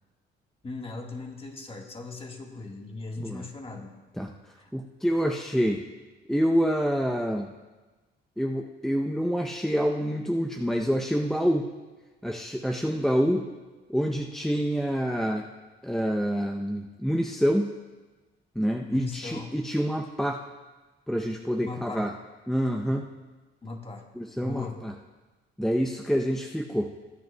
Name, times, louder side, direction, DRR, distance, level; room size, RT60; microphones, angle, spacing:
voice 1, 0.6-3.9 4.6-4.7 18.9-19.5 21.6-22.1 23.6-24.0 24.4-24.8, left 3 dB, 30° left, 2 dB, 1.5 m, -38 dB
voice 2, 4.7-5.8 6.3-7.5 8.4-11.7 12.2-13.5 13.9-15.5 15.8-17.7 18.6-20.4 21.1-22.1 22.5-23.1 24.2-24.9 25.6-26.9, equal, ahead, 2 dB, 0.6 m, -27 dB
21.5 x 9.2 x 2.2 m, 1.2 s
cardioid pair, 90°, 20 cm